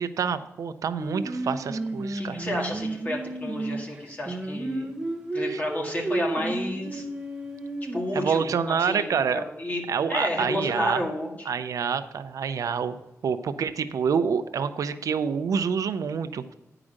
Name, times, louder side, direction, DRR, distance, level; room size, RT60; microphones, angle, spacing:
voice 1, 0.0-2.4 5.5-5.6 8.1-9.4 9.9-11.0 11.5-13.0 13.2-16.5, right 6 dB, 85° right, 11 dB, 0.5 m, -27 dB
Singing, 1.0-8.3, right 2 dB, 15° right, 0.9 m, -32 dB
voice 2, 2.2-4.9 5.3-7.0 7.9-9.8 10.1-11.5, left 1 dB, 30° left, -2 dB, 1.9 m, -31 dB
9.8 x 4.9 x 6.4 m, 0.92 s
wide cardioid pair, 160°, 6 cm